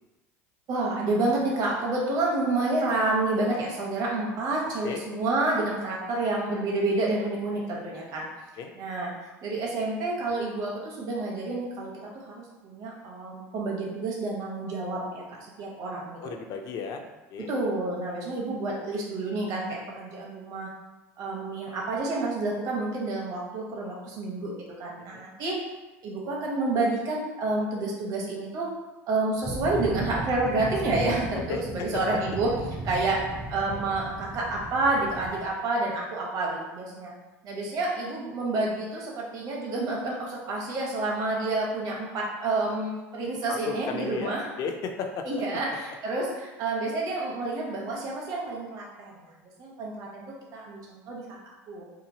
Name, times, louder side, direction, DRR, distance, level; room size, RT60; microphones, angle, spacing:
voice 1, 0.7-8.2 8.8-9.1 9.4-16.3 17.4-20.7 21.2-25.6 26.0-28.7 29.1-32.5 32.8-33.2 33.5-37.1 37.4-44.4 45.2-49.3 49.6-51.4 51.7-51.8, right 2 dB, 55° right, -3 dB, 0.9 m, -29 dB
voice 2, 16.2-17.0 17.3-17.5 25.1-25.2 31.5-31.9 43.5-45.3, left 5 dB, 55° left, 4 dB, 0.4 m, -34 dB
sound 1, 29.4-35.5, right 1 dB, 30° right, 0.5 m, -36 dB
2.9 x 2.4 x 2.7 m, 1.1 s
hypercardioid pair, 90°, 8 cm